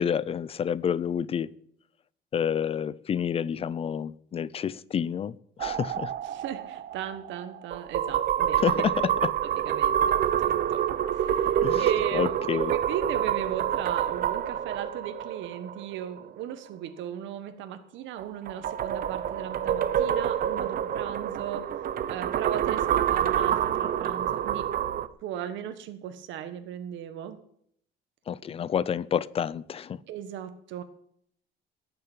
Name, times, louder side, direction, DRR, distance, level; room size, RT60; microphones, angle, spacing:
voice 1, 0.0-1.5 2.3-5.3 5.6-6.1 8.6-8.9 11.6-11.8 12.1-12.7 28.3-30.0, left 8 dB, 30° left, 0.5 m, -28 dB
sound 1, 5.6-16.2 18.2-25.1, right 10 dB, 50° right, 0.8 m, -27 dB
voice 2, 6.2-8.8 9.4-10.8 11.1-21.7 22.1-24.7 25.2-27.4 30.1-30.8, right 10 dB, 75° right, 1.3 m, -37 dB
17.5 x 6.9 x 8.9 m
cardioid pair, 150°, 19 cm